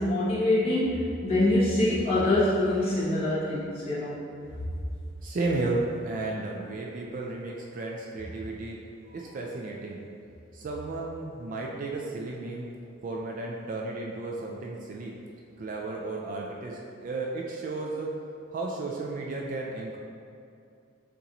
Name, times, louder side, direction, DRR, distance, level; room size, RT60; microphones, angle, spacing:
voice 1, 0.0-4.1, left 1 dB, 30° left, -12 dB, 1.2 m, -25 dB
voice 2, 5.2-8.8 9.1-10.0 10.5-12.7 13.0-15.1 15.6-18.1 18.5-20.0, right 2 dB, 45° right, -1 dB, 0.3 m, -33 dB
6.7 x 2.6 x 2.9 m, 2.5 s
head